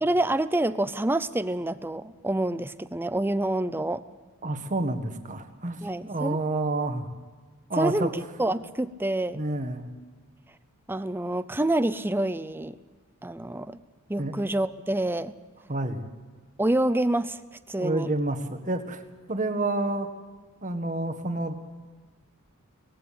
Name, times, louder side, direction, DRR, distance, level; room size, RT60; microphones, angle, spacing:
voice 1, 0.0-4.0 5.8-6.4 7.8-8.1 8.4-9.4 10.9-12.8 13.2-13.8 14.1-15.3 16.6-17.4 17.7-18.1, right 1 dB, 10° right, 14 dB, 0.5 m, -27 dB
voice 2, 4.4-7.1 7.7-8.1 9.3-9.9 14.2-14.4 15.7-16.1 17.8-19.0 19.3-20.1 20.6-21.6, right 2 dB, 35° right, 7 dB, 1.6 m, -29 dB
20.0 x 16.0 x 8.6 m, 1.4 s
head